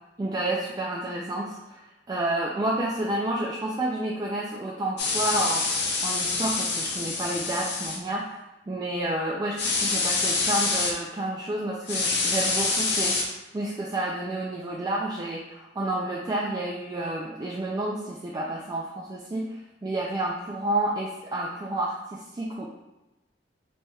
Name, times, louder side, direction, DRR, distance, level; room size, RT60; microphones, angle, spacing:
voice 1, 0.2-5.6 6.0-8.2 8.7-22.7, right 1 dB, 20° right, -3 dB, 0.3 m, -30 dB
sound 1, 5.0-8.0 9.6-10.9 11.9-13.2, left 3 dB, 65° left, 0.6 m, -26 dB
4.3 x 3.1 x 2.3 m, 1.0 s
head